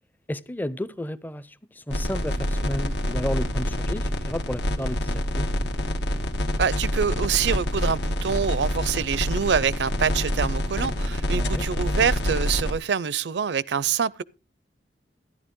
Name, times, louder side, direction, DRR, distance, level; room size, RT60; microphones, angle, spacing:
voice 1, 0.3-5.5 11.3-11.6, left 1 dB, 10° left, 0.5 m, -32 dB
sound 1, 1.9-12.7, equal, 85° left, 1.5 m, -26 dB
voice 2, 6.6-14.2, right 6 dB, 75° right, 0.5 m, -25 dB
13.5 x 11.0 x 3.7 m
head